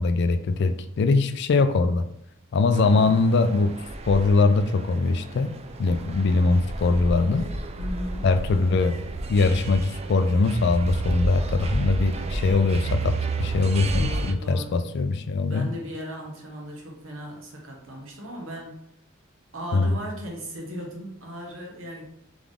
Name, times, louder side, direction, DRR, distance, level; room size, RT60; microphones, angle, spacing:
voice 1, 0.0-2.0 2.5-3.8 4.0-5.5 5.8-7.5 8.2-9.0 9.3-15.7 19.7-19.9, left 3 dB, 55° left, 9 dB, 0.3 m, -22 dB
sound 1, 2.7-14.3, right 2 dB, 30° right, 0.3 m, -31 dB
voice 2, 7.8-8.3 13.9-14.8 15.5-18.8 19.5-22.0, equal, 70° right, 0 dB, 1.2 m, -37 dB
3.7 x 3.5 x 3.5 m, 0.76 s
head